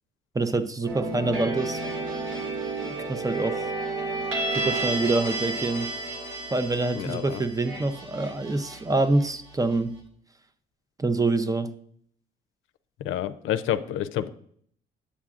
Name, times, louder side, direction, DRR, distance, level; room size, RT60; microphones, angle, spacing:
voice 1, 0.3-1.8 2.8-3.7 4.5-5.9 6.5-9.9 11.0-11.7, right 2 dB, 15° right, 11 dB, 0.6 m, -26 dB
sound 1, 0.9-9.7, right 2 dB, 85° right, 2.0 m, -32 dB
voice 2, 7.0-7.4 13.0-14.3, left 11 dB, 85° left, 11 dB, 0.5 m, -28 dB
8.5 x 7.3 x 2.4 m, 0.63 s
cardioid pair, 90°, 20 cm